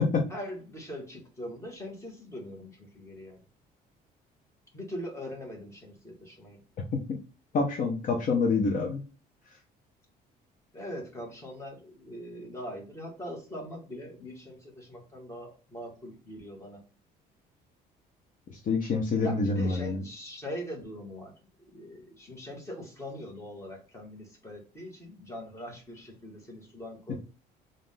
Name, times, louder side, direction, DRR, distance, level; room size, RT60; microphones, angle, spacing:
voice 1, 0.3-3.4 4.7-6.6 10.7-16.8 19.1-21.3 21.7-27.2, equal, 15° left, 1.8 m, -41 dB
voice 2, 7.5-9.0 18.7-20.0, left 4 dB, 50° left, 0.9 m, -26 dB
3.7 x 2.6 x 3.8 m
cardioid pair, 110°, 17 cm